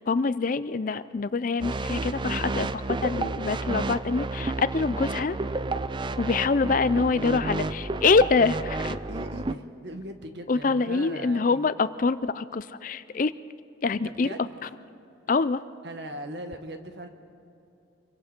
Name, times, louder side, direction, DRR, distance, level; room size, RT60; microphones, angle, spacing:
voice 1, 0.0-5.4 6.2-9.0 10.5-13.3 13.8-14.3 14.6-14.7 15.3-15.6, left 4 dB, 45° left, 15 dB, 0.4 m, -25 dB
sound 1, 1.6-9.5, right 2 dB, 25° right, 0.4 m, -31 dB
voice 2, 9.1-11.7 14.0-14.4 15.8-17.1, right 1 dB, 60° right, 5 dB, 1.6 m, -39 dB
28.0 x 23.0 x 4.5 m, 2.7 s
head